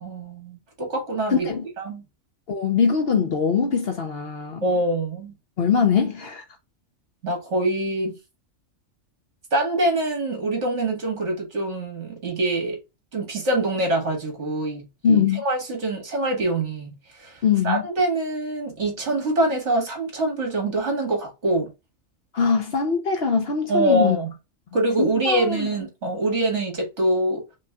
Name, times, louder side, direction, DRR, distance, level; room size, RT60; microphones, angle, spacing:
voice 1, 0.0-1.5 1.8-2.0 4.6-5.3 7.2-8.2 9.5-12.8 13.1-21.7 23.7-24.3 24.7-27.4, right 1 dB, 60° right, 2.0 m, -25 dB
voice 2, 1.3-1.7 2.5-4.6 5.6-6.4 15.0-15.4 17.4-17.8 22.3-24.2 25.0-25.7, left 6 dB, 55° left, 0.9 m, -22 dB
5.3 x 3.0 x 2.3 m
omnidirectional pair, 1.4 m